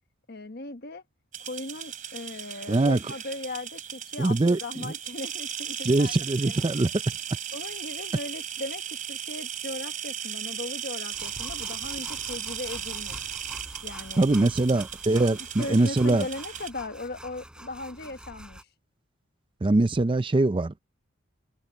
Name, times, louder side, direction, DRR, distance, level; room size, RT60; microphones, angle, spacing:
voice 1, 0.3-1.0 1.4-6.1 6.4-6.7 7.5-8.8 9.1-13.2 13.8-14.5 15.3-18.6, left 2 dB, 50° left, 1.2 m, -38 dB
sound 1, 1.3-16.7, right 9 dB, 40° right, 2.9 m, -36 dB
voice 2, 2.7-3.0 4.2-4.9 5.8-6.9 14.2-16.3 19.6-20.8, right 2 dB, 25° right, 0.5 m, -23 dB
sound 2, 11.1-18.6, right 1 dB, 5° right, 7.4 m, -45 dB
head